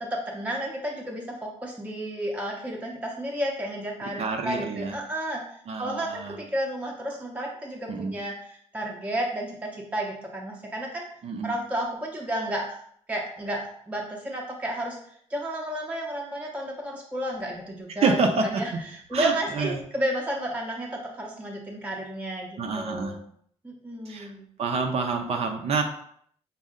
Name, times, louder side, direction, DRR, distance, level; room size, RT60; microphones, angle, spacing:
voice 1, 0.0-11.0 11.4-12.8 13.1-18.2 18.6-23.2 23.6-24.5, right 1 dB, 10° right, -1 dB, 0.6 m, -32 dB
voice 2, 4.2-4.9 5.7-6.4 7.9-8.2 11.2-11.5 18.0-18.6 19.1-19.8 22.6-23.2 24.1-24.3 24.6-25.8, right 4 dB, 60° right, 3 dB, 0.5 m, -27 dB
5.2 x 2.1 x 3.6 m, 0.64 s
wide cardioid pair, 145°, 12 cm